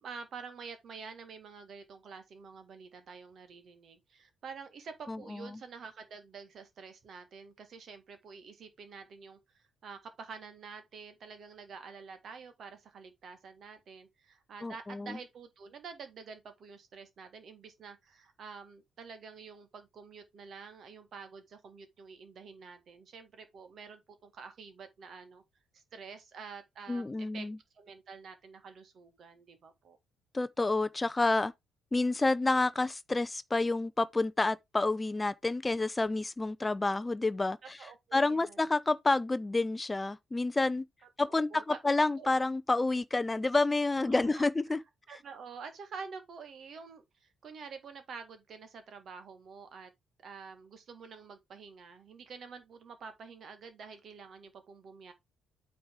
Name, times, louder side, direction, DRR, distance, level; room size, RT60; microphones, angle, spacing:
voice 1, 0.0-25.4 25.7-27.5 27.7-30.0 37.8-38.6 41.2-41.8 42.2-42.3 44.0-44.4 45.1-49.9 50.2-55.1, right 5 dB, 50° right, 1.7 m, -48 dB
voice 2, 5.1-5.5 14.6-15.2 26.9-27.6 30.3-31.5 31.9-37.8 38.1-40.8 41.2-44.8, left 2 dB, 20° left, 0.5 m, -29 dB
8.6 x 3.5 x 4.7 m
figure-of-eight pair, 45°, 0 cm